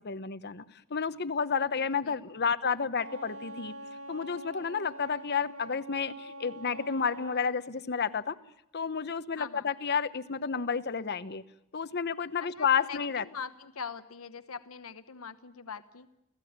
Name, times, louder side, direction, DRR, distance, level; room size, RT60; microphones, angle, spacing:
voice 1, 0.0-0.6 0.9-3.7 4.1-8.4 8.7-11.4 11.7-13.3, left 6 dB, 50° left, 13 dB, 1.0 m, -31 dB
Wind instrument woodwind instrument, 2.9-7.5, right 1 dB, 75° right, 2.1 m, -44 dB
voice 2, 9.4-9.7 12.4-16.1, left 6 dB, 75° left, 11 dB, 1.1 m, -43 dB
29.0 x 16.0 x 9.5 m, 0.85 s
head